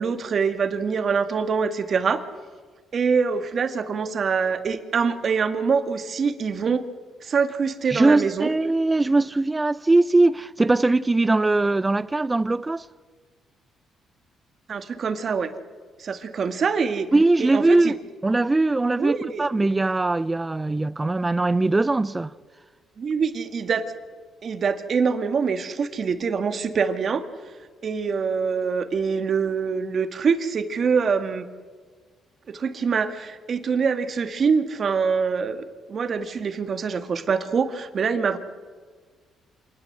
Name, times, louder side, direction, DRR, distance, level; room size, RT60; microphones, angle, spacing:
voice 1, 0.0-2.2 2.9-6.8 7.2-8.5 14.7-15.5 16.0-17.1 17.4-18.0 19.0-19.5 23.0-23.8 24.4-27.3 27.8-31.5 32.5-35.6 35.9-38.4, right 5 dB, 50° right, 2.0 m, -24 dB
voice 2, 7.9-12.9 17.1-18.0 18.2-22.3, right 2 dB, 20° right, 0.6 m, -21 dB
26.5 x 20.0 x 8.0 m
cardioid pair, 90°, 0 cm